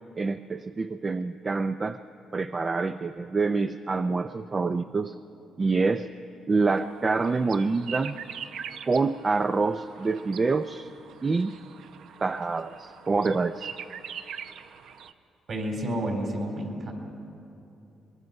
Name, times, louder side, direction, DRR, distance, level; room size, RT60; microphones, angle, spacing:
voice 1, 0.2-2.0 2.3-5.1 5.6-6.1 6.5-8.2 8.9-10.9 11.2-11.6 12.2-13.7, right 4 dB, 25° right, 10 dB, 0.4 m, -26 dB
sound 1, 6.7-15.1, right 8 dB, 75° right, 0.7 m, -43 dB
voice 2, 15.5-16.9, right 1 dB, 50° right, 2 dB, 4.0 m, -30 dB
23.5 x 21.5 x 5.4 m, 2.8 s
cardioid pair, 115°, 0 cm